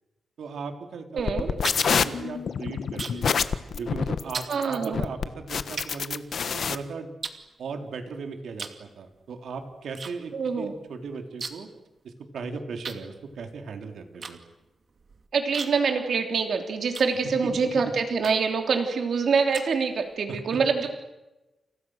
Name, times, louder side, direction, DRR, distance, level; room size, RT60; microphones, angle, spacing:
voice 1, 0.4-3.3 3.8-7.1 7.6-11.7 12.0-14.4 17.4-17.5 20.3-20.4, right 4 dB, 90° right, 5 dB, 3.7 m, -37 dB
voice 2, 1.1-1.5 4.5-5.0 10.3-10.7 15.3-20.9, right 5 dB, 60° right, 5 dB, 3.2 m, -25 dB
sound 1, 1.2-6.7, left 6 dB, 55° left, 1.3 m, -27 dB
sound 2, 1.3-3.4 3.7-4.0 4.3-4.6 5.2-5.3 5.8-6.7 7.2-8.1 8.5-8.9 9.1-10.1 10.4-10.5 10.7-11.8 12.1-12.2 12.8-17.6 18.2-18.6 19.1-20.2, right 5 dB, 45° right, 2.5 m, -39 dB
30.0 x 29.0 x 6.5 m, 1.0 s
wide cardioid pair, 170°, 0 cm